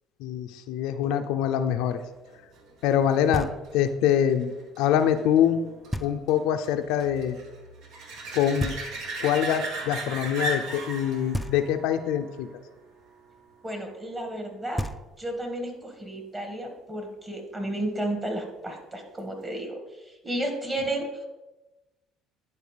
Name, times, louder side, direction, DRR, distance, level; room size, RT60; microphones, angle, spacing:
voice 1, 0.2-2.0 2.8-3.5 3.7-5.6 6.0-7.4 8.3-8.8 9.2-12.5, left 9 dB, 80° left, 8 dB, 0.4 m, -24 dB
sound 1, 2.3-13.6 19.2-19.3, right 2 dB, 70° right, 1.2 m, -38 dB
Knock, 3.3-4.0 5.9-6.6 8.6-9.4 11.3-12.1 14.4-14.5 14.8-15.6, equal, 5° left, 0.4 m, -35 dB
voice 2, 13.6-14.8 15.2-19.8 20.2-21.1, right 1 dB, 25° right, 3 dB, 1.9 m, -32 dB
10.5 x 4.2 x 3.3 m, 1.1 s
supercardioid pair, 80°, 0 cm